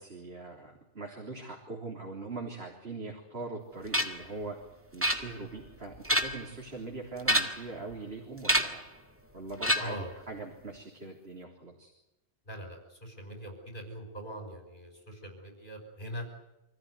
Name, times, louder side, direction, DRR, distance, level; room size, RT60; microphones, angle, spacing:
voice 1, 0.0-4.6 4.9-8.8 9.3-11.9, right 3 dB, 60° right, 0 dB, 3.8 m, -41 dB
sound 1, 3.9-4.3 5.0-5.6 5.9-6.5 7.2-7.7 8.4-8.9 9.6-10.1, equal, 10° right, 2.0 m, -28 dB
voice 2, 12.5-16.3, equal, 45° left, 4 dB, 5.8 m, -42 dB
26.5 x 15.0 x 9.7 m, 0.96 s
omnidirectional pair, 1.2 m